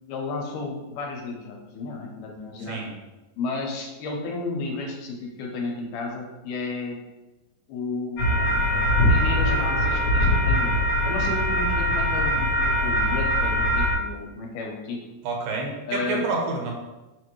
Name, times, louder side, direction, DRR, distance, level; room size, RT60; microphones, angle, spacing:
voice 1, 0.1-2.8 3.4-7.0 7.7-8.5 9.1-10.8 11.0-15.1 15.9-16.2, left 3 dB, 80° left, 0 dB, 2.1 m, -32 dB
sound 1, 8.2-13.9, equal, 60° left, 1.8 m, -22 dB
voice 2, 15.2-16.7, right 3 dB, 85° right, 1 dB, 2.5 m, -28 dB
6.2 x 2.5 x 3.0 m, 1.1 s
omnidirectional pair, 3.9 m